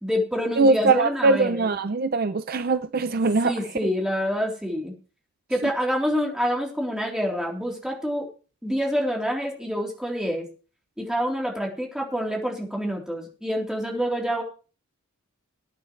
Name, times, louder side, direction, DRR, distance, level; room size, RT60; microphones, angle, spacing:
voice 1, 0.0-1.7 3.4-4.9 5.5-8.3 8.6-10.5 11.0-14.4, equal, 5° right, 3.6 m, -27 dB
voice 2, 0.6-3.5, right 3 dB, 45° right, 0.5 m, -21 dB
20.5 x 9.1 x 3.2 m
head